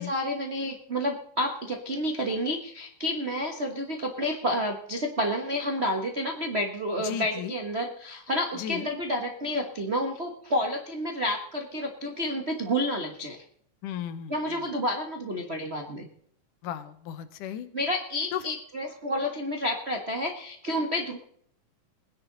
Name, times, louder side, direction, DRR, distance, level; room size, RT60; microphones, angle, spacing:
voice 1, 0.0-13.4 14.3-16.1 17.7-21.2, equal, 90° right, 0 dB, 0.5 m, -30 dB
voice 2, 7.0-7.5 8.5-8.9 13.8-14.3 16.6-17.7 18.3-18.4, left 10 dB, 80° left, 11 dB, 2.5 m, -35 dB
21.0 x 10.5 x 4.0 m, 0.65 s
omnidirectional pair, 3.6 m